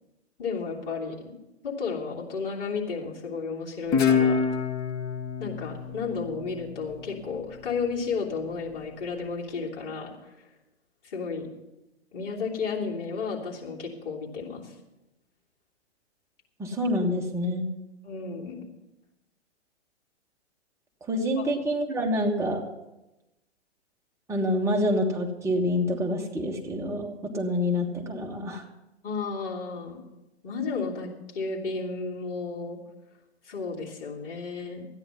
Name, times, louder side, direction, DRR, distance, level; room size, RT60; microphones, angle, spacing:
voice 1, 0.4-1.2 1.6-4.5 5.4-10.5 11.0-11.5 12.1-14.7 18.0-18.7 21.4-21.5 29.0-30.0 30.4-32.8 33.5-34.9, left 5 dB, 50° left, -4 dB, 3.1 m, -33 dB
Guitar, 3.9-7.2, left 6 dB, 30° left, 1.0 m, -26 dB
voice 2, 16.6-17.7 21.1-22.7 24.3-28.6, left 1 dB, 10° right, 0 dB, 1.4 m, -27 dB
13.5 x 9.8 x 5.7 m, 0.98 s
figure-of-eight pair, 120°, 34 cm